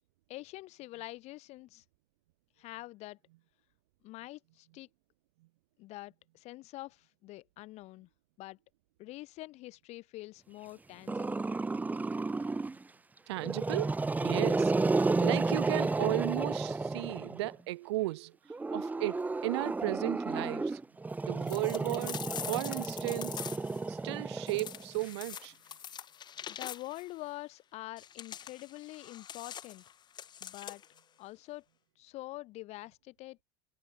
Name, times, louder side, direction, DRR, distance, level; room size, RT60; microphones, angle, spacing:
voice 1, 0.3-1.8 2.6-3.2 4.0-4.9 5.8-8.1 8.4-8.6 9.0-11.5 26.5-29.8 30.4-30.8 31.2-31.6 32.0-33.4, left 18 dB, 50° left, 6.7 m, -45 dB
Growling, 11.1-12.8 13.4-17.5 18.5-25.0, right 3 dB, 10° right, 3.8 m, -32 dB
voice 2, 13.3-18.4 18.7-20.8 21.2-23.4 23.9-25.5, right 19 dB, 80° right, 3.4 m, -35 dB
sound 1, 21.5-23.8 24.5-27.1 28.0-31.0, left 9 dB, 30° left, 2.6 m, -44 dB
supercardioid pair, 120°, 14 cm